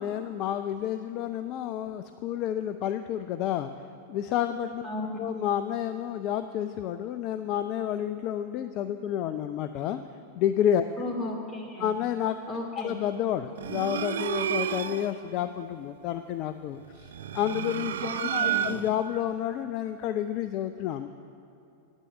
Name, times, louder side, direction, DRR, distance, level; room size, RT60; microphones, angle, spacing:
voice 1, 0.0-3.7 4.1-4.8 5.2-10.0 10.3-10.8 11.8-12.4 12.8-21.1, left 10 dB, 40° left, 10 dB, 0.4 m, -30 dB
voice 2, 4.8-5.2 11.0-11.9 12.5-13.0 18.0-18.7, left 2 dB, 20° left, 0 dB, 2.4 m, -35 dB
sound 1, 13.6-15.2 17.0-19.1, right 9 dB, 60° right, 0.4 m, -30 dB
9.0 x 8.4 x 9.1 m, 2.7 s
figure-of-eight pair, 90°, 0 cm